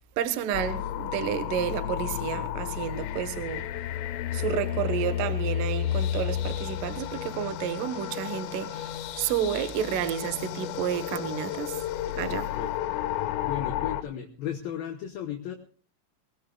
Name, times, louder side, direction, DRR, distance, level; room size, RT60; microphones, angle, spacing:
voice 1, 0.0-3.7 4.3-11.8 12.2-12.5, right 9 dB, 75° right, 2.0 m, -31 dB
sound 1, 0.5-14.0, left 11 dB, 90° left, 3.4 m, -32 dB
voice 2, 12.3-12.7 13.1-15.5, left 9 dB, 70° left, 2.3 m, -36 dB
23.5 x 20.0 x 2.3 m
omnidirectional pair, 5.6 m